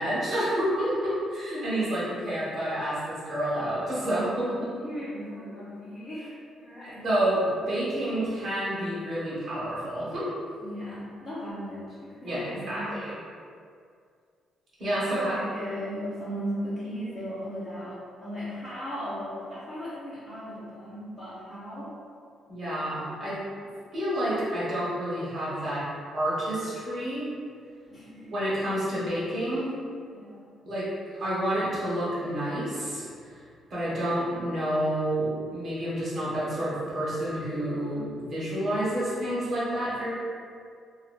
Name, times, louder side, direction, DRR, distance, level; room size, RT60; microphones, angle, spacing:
voice 1, 0.0-4.7 7.0-10.3 12.2-13.2 14.8-15.3 22.5-23.3 23.9-25.8 26.1-27.2 28.3-29.7 30.6-30.8 31.2-33.4 33.7-40.1, right 1 dB, 50° right, -10 dB, 1.5 m, -29 dB
voice 2, 4.8-7.2 8.0-8.3 10.6-13.0 14.9-21.9 27.9-28.5 30.1-30.5, equal, 25° left, -14 dB, 1.0 m, -37 dB
2.8 x 2.8 x 2.6 m, 2.2 s
cardioid pair, 90°, 0 cm